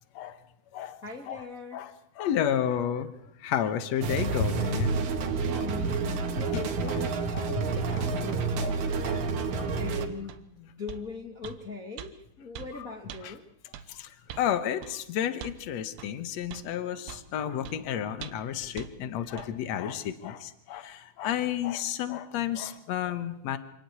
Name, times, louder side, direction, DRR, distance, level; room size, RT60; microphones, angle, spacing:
voice 1, 1.0-1.8 5.4-7.2 7.5-8.6 9.8-13.4, left 4 dB, 60° left, 1 dB, 0.8 m, -41 dB
voice 2, 1.7-3.1 3.4-5.0 6.5-7.0 7.3-8.0 8.6-8.7 9.0-9.2 9.5-9.7 13.2-13.3 13.9-23.6, left 9 dB, 80° left, 10 dB, 1.5 m, -31 dB
sound 1, 4.0-10.1, right 4 dB, 60° right, 2.3 m, -29 dB
sound 2, 10.3-10.4 10.9-11.1 11.4-11.6 12.0-12.1 12.5-12.7 13.1-13.2 13.7-13.9 14.3-14.5 14.8-15.0 15.4-15.6 16.0-16.1 16.5-16.7 17.1-17.3 17.6-17.8 18.2-18.5 18.8-18.9 19.4-19.5, right 10 dB, 85° right, 3.1 m, -42 dB
26.0 x 11.5 x 9.6 m, 0.82 s
omnidirectional pair, 4.8 m